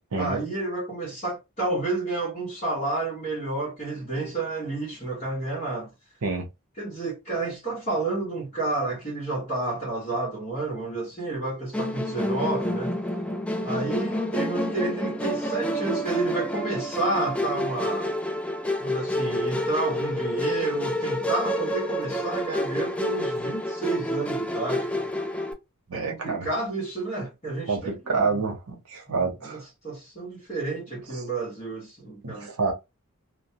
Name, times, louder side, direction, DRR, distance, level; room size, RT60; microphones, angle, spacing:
voice 1, 0.2-5.9 6.8-13.0 13.6-18.1 18.8-25.1 25.9-28.5 29.1-32.5, right 2 dB, 30° left, 1.0 m, -30 dB
Musical instrument, 11.7-25.5, left 1 dB, 5° left, 0.3 m, -29 dB
voice 2, 25.9-26.5 27.7-29.6 32.2-32.7, right 4 dB, 70° right, 0.7 m, -28 dB
2.2 x 2.2 x 2.7 m
head